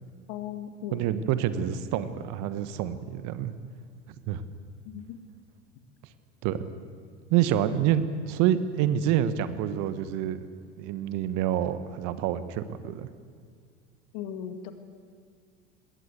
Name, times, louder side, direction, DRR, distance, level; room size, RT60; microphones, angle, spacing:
voice 1, 0.3-1.1 4.9-5.2 14.1-14.7, left 9 dB, 60° left, 8 dB, 2.1 m, -37 dB
voice 2, 0.9-3.5 4.3-4.4 6.4-6.7 7.3-10.4 10.8-13.1, right 10 dB, 55° right, 13 dB, 1.4 m, -27 dB
20.5 x 18.0 x 8.3 m, 2.1 s
hypercardioid pair, 80°, 35 cm